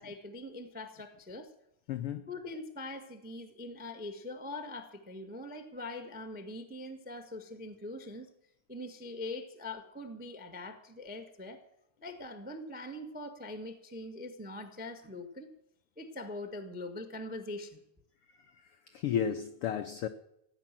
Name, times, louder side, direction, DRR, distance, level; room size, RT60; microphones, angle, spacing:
voice 1, 0.0-1.5 2.3-8.3 8.7-11.6 12.0-15.5 16.0-17.8, left 2 dB, 15° right, 0.3 m, -42 dB
voice 2, 1.9-2.2 18.5-20.1, left 8 dB, 90° left, 1.2 m, -33 dB
16.0 x 10.0 x 7.6 m
omnidirectional pair, 3.5 m